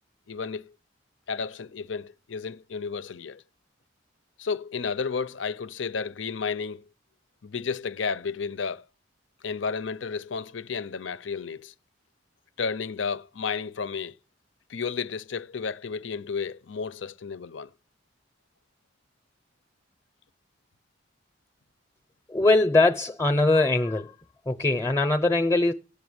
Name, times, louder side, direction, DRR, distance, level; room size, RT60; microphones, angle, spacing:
voice 1, 0.3-0.7 1.3-3.4 4.4-6.8 7.4-8.8 9.4-11.7 12.6-14.2 14.7-17.7, left 5 dB, 80° left, 0.7 m, -32 dB
voice 2, 22.3-24.1 24.5-25.7, left 2 dB, 15° left, 0.7 m, -21 dB
17.0 x 6.2 x 9.6 m
head